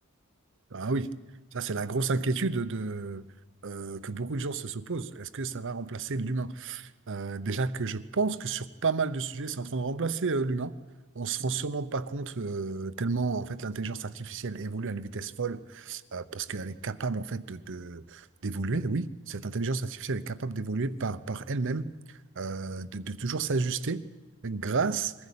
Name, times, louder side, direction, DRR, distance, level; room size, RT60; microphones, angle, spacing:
voice 1, 0.7-1.1 1.5-3.2 3.6-10.7 11.1-21.9 22.4-24.0 24.4-25.1, right 4 dB, 60° right, 13 dB, 0.8 m, -31 dB
22.5 x 15.0 x 8.6 m, 1.3 s
head